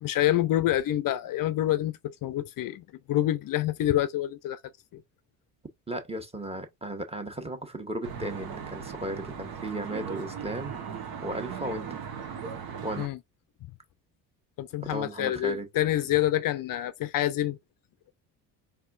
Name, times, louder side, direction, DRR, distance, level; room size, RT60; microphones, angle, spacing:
voice 1, 0.0-4.6 4.9-5.0 13.0-13.2 14.6-17.6, left 13 dB, 50° left, 0.5 m, -27 dB
voice 2, 5.9-10.9 11.2-12.0 12.8-13.1 14.8-15.7, right 1 dB, 15° right, 1.4 m, -35 dB
Traffic noise roadway noise, 8.0-13.1, right 7 dB, 55° right, 1.2 m, -38 dB
4.2 x 3.5 x 2.5 m
hypercardioid pair, 65°, 45 cm